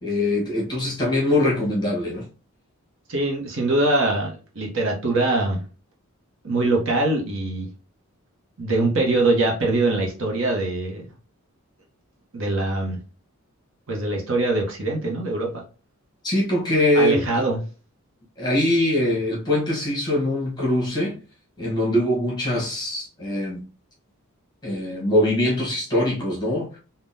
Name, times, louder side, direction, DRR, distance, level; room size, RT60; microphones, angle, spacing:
voice 1, 0.0-2.3 16.2-17.3 18.4-21.2 21.6-23.6 24.6-26.8, left 1 dB, 20° left, 1.0 m, -22 dB
voice 2, 3.1-5.6 6.4-7.7 8.6-11.1 12.3-13.0 13.9-15.6 16.9-17.6, right 2 dB, 60° right, 0.8 m, -23 dB
3.6 x 2.2 x 2.6 m
head